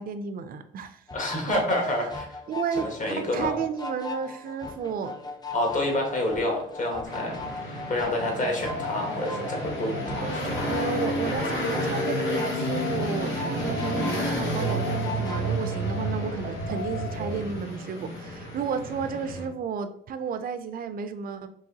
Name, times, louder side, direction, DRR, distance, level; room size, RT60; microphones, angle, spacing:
voice 1, 0.0-1.0 1.5-1.6 2.5-5.1 10.7-21.5, right 6 dB, 45° right, 0.4 m, -32 dB
voice 2, 1.1-2.4 2.8-3.5 5.5-10.8, left 1 dB, 40° left, 1.4 m, -28 dB
sound 1, 1.1-15.8, left 3 dB, 20° left, 0.5 m, -40 dB
sound 2, 7.0-19.5, equal, 75° left, 1.4 m, -31 dB
sound 3, 8.4-17.4, left 1 dB, 90° right, 0.7 m, -37 dB
4.6 x 2.9 x 2.8 m
cardioid pair, 90°, 20 cm